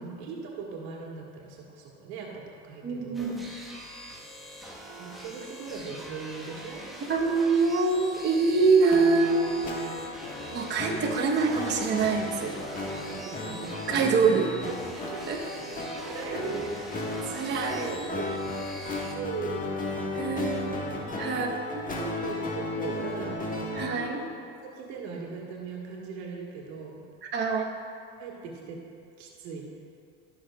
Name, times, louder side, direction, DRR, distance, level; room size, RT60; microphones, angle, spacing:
voice 1, 0.0-3.4 5.0-6.8 13.1-13.7 15.1-15.5 16.0-16.7 17.7-18.3 18.7-19.6 20.2-20.7 21.1-21.2 21.9-23.5 24.2-24.3 24.6-26.9 28.2-28.8 29.2-29.6, right 5 dB, 85° right, -1 dB, 1.7 m, -39 dB
voice 2, 2.8-3.4 7.1-9.5 9.9-10.0 10.5-12.6 13.9-14.5 15.3-15.4 17.3-18.0 20.1-20.8 21.2-21.8 23.8-24.2 27.3-27.7, right 4 dB, 35° right, -1 dB, 1.1 m, -25 dB
sound 1, 3.1-19.1, right 1 dB, ahead, 1.4 m, -44 dB
sound 2, 8.9-24.2, left 2 dB, 25° left, 1.6 m, -34 dB
18.5 x 6.5 x 2.4 m, 2.5 s
supercardioid pair, 100°, 32 cm